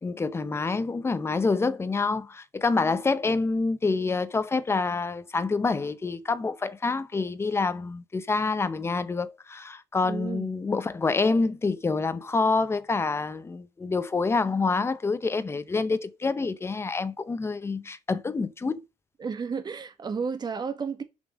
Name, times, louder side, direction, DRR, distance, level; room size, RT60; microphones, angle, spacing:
voice 1, 0.0-18.8, left 4 dB, 15° left, 0.7 m, -27 dB
voice 2, 10.1-10.5 19.2-21.0, right 5 dB, 30° right, 1.5 m, -32 dB
7.2 x 5.6 x 6.2 m
cardioid pair, 140°, 15 cm